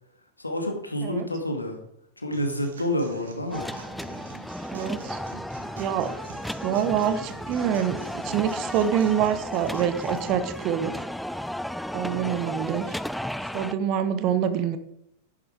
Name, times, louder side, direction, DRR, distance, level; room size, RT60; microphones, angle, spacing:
voice 1, 0.4-1.8 2.2-3.7 12.1-12.5, left 1 dB, 85° left, 4 dB, 2.3 m, -29 dB
Human voice / Acoustic guitar / Drum, 2.3-10.3, right 5 dB, 65° right, 2.4 m, -46 dB
sound 1, 3.5-13.7, equal, ahead, 0.4 m, -34 dB
voice 2, 4.7-5.2 5.8-6.1 6.6-11.0 11.9-13.0 13.5-14.8, right 9 dB, 40° right, 11 dB, 1.2 m, -26 dB
11.0 x 11.0 x 4.9 m, 0.78 s
figure-of-eight pair, 90°, 0 cm